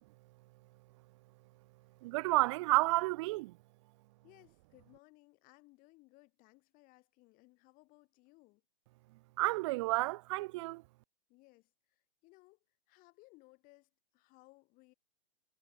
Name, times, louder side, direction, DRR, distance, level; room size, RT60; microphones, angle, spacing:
voice 1, 2.0-3.6 9.4-10.8, right 21 dB, 30° right, 0.7 m, -31 dB
voice 2, 4.2-8.6 11.3-11.7 12.2-12.6 12.9-14.9, left 23 dB, 30° left, 4.9 m, -63 dB
hypercardioid pair, 145°, 29 cm